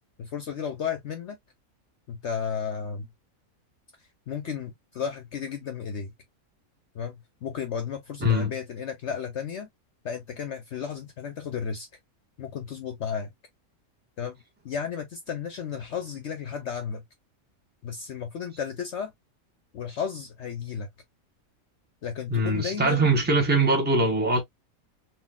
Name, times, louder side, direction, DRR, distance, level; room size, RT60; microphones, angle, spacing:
voice 1, 0.2-1.4 2.1-3.1 4.3-6.1 6.9-7.2 7.4-9.7 10.0-11.9 12.4-13.3 14.2-17.0 17.8-19.1 19.7-20.9 22.0-23.1, left 7 dB, 60° left, 0.9 m, -33 dB
voice 2, 8.2-8.5 22.3-24.4, right 1 dB, 10° right, 0.9 m, -22 dB
3.9 x 2.6 x 2.2 m
omnidirectional pair, 1.5 m